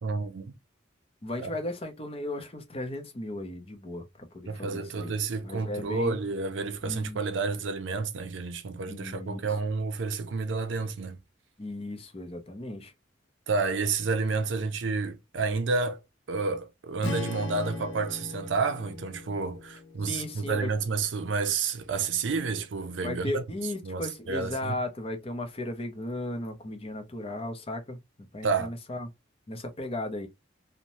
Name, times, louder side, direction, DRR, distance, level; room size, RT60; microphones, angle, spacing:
voice 1, 0.0-0.5 1.4-1.5 4.5-11.2 13.5-16.0 16.3-23.4 23.8-24.7 28.4-28.7, right 4 dB, 70° right, 0.5 m, -30 dB
voice 2, 1.2-5.1 5.4-6.2 6.8-7.2 8.9-9.5 11.6-12.9 20.0-20.7 23.0-28.0 28.3-29.1 29.5-30.3, left 1 dB, 30° left, 0.6 m, -36 dB
Strum, 17.0-21.3, left 3 dB, 70° left, 0.7 m, -40 dB
2.7 x 2.1 x 2.9 m
head